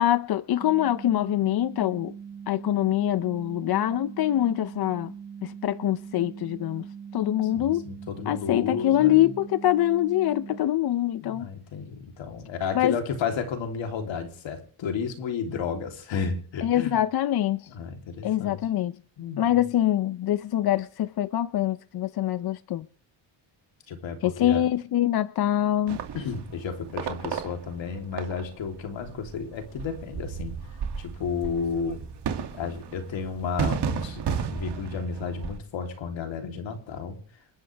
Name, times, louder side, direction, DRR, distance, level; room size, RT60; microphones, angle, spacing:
voice 1, 0.0-2.1 2.5-5.1 5.4-6.9 7.1-7.8 8.3-11.5 12.7-13.0 16.6-17.7 18.2-18.9 19.4-22.9 24.2-26.0, left 12 dB, 55° left, 0.6 m, -24 dB
sound 1, 0.6-10.6, right 7 dB, 20° right, 0.8 m, -41 dB
voice 2, 7.5-9.3 11.2-17.0 17.7-18.6 19.2-19.6 23.9-24.7 26.1-30.5 31.0-32.0 32.5-37.2, left 6 dB, 75° left, 3.4 m, -32 dB
sound 2, 25.9-35.6, right 7 dB, 60° right, 2.5 m, -33 dB
29.5 x 11.5 x 3.5 m
cardioid pair, 140°, 47 cm